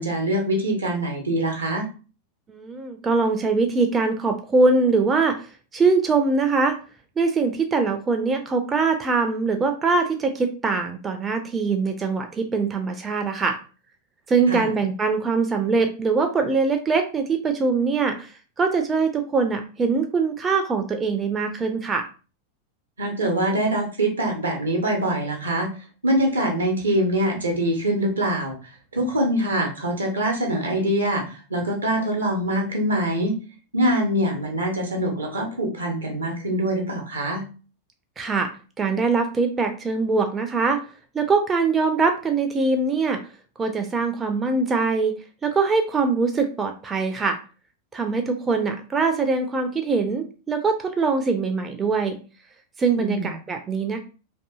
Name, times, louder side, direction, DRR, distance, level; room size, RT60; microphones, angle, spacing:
voice 1, 0.0-1.9 14.5-14.7 23.0-25.7 26.0-33.4 33.7-37.5 53.0-53.3, right 1 dB, 75° right, 2 dB, 0.6 m, -24 dB
voice 2, 2.5-6.8 7.2-13.6 14.3-22.0 38.2-38.5 38.8-40.8 41.1-43.2 43.6-45.1 45.4-47.4 47.9-52.2 52.8-54.0, right 4 dB, 20° right, 5 dB, 0.4 m, -22 dB
2.6 x 2.6 x 2.3 m, 0.35 s
figure-of-eight pair, 90°, 0 cm